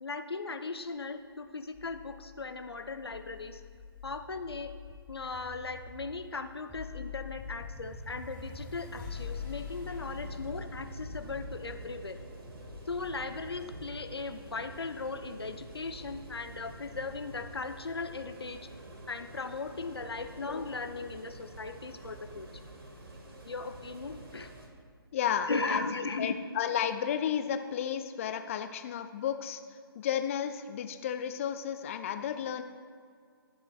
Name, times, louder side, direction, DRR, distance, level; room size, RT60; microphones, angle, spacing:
voice 1, 0.0-3.6 4.0-4.7 5.1-12.2 12.9-18.6 19.1-22.5 23.4-24.5 25.5-26.3, left 4 dB, 80° left, 8 dB, 0.7 m, -37 dB
sound 1, 1.7-14.9, left 5 dB, 10° left, 1.2 m, -45 dB
sound 2, 8.8-24.7, right 2 dB, 70° right, 2.0 m, -47 dB
voice 2, 25.1-32.6, left 8 dB, 35° left, 9 dB, 0.4 m, -33 dB
20.5 x 7.2 x 2.3 m, 2.1 s
figure-of-eight pair, 140°, 13 cm